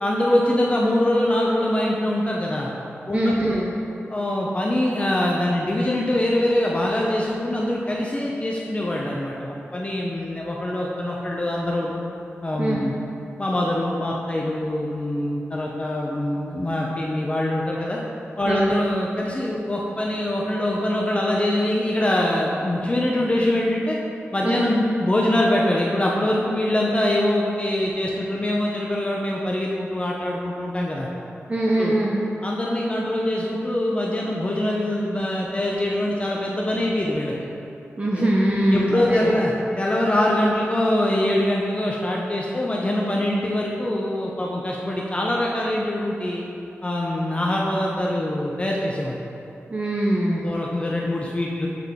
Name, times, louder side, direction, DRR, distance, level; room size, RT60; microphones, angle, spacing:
voice 1, 0.0-2.7 3.1-3.7 4.1-12.0 12.4-12.9 13.4-18.0 18.4-24.0 24.3-31.1 31.8-32.0 32.4-37.3 38.1-38.3 38.7-46.4 46.8-49.2 50.4-51.7, left 1 dB, 25° left, -3 dB, 0.5 m, -23 dB
voice 2, 3.1-3.6 12.6-12.8 18.5-18.7 24.4-24.7 31.5-32.1 38.0-39.3 49.7-50.5, right 1 dB, 30° right, -3 dB, 0.5 m, -22 dB
7.4 x 3.7 x 3.5 m, 2.7 s
wide cardioid pair, 115°, 5 cm